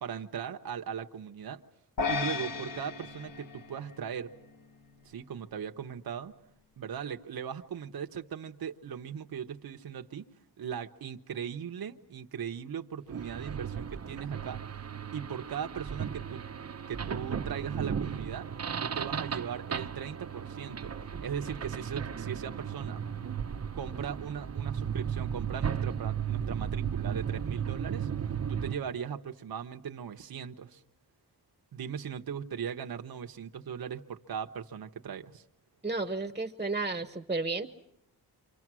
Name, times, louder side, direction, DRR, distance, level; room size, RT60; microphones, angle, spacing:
voice 1, 0.0-1.6 2.1-4.3 5.0-6.3 6.8-10.3 10.6-14.6 15.1-16.4 16.9-18.5 18.8-23.0 23.7-28.1 28.5-30.8 31.7-35.4, right 8 dB, 60° right, 5 dB, 1.1 m, -38 dB
sound 1, 2.0-4.5, left 5 dB, 55° left, 1.7 m, -35 dB
sound 2, 13.1-28.8, right 7 dB, 40° right, 0.9 m, -35 dB
voice 2, 35.8-37.7, right 3 dB, 15° right, 7 dB, 1.1 m, -32 dB
29.0 x 26.0 x 6.2 m, 0.78 s
wide cardioid pair, 110°, 41 cm